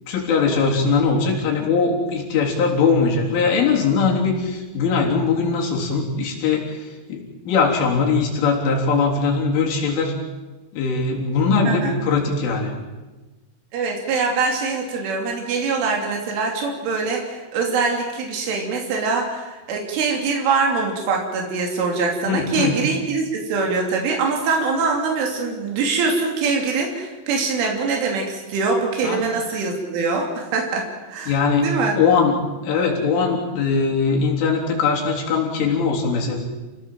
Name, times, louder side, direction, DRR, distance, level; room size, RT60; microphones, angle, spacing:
voice 1, 0.1-7.2 7.5-10.1 10.7-12.7 22.3-22.8 29.0-29.2 31.3-32.4 32.6-36.4, left 5 dB, 85° left, -1 dB, 6.2 m, -20 dB
voice 2, 13.7-31.4 31.6-32.0, right 4 dB, 90° right, 1 dB, 5.4 m, -23 dB
29.5 x 18.0 x 7.7 m, 1.2 s
omnidirectional pair, 5.4 m